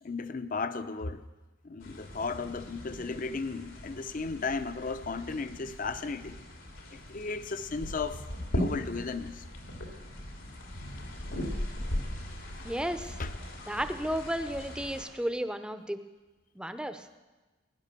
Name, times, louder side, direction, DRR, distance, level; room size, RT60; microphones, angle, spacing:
voice 1, 0.0-1.2 1.6-6.4 6.9-8.2 8.5-9.4 13.2-13.3 13.6-13.8, left 4 dB, 45° left, 12 dB, 0.7 m, -35 dB
sound 1, 1.8-15.1, equal, 90° left, 2.8 m, -39 dB
voice 2, 12.6-13.2 13.7-16.0 16.6-17.1, equal, 5° right, 10 dB, 0.6 m, -33 dB
17.5 x 10.0 x 6.8 m, 1.2 s
head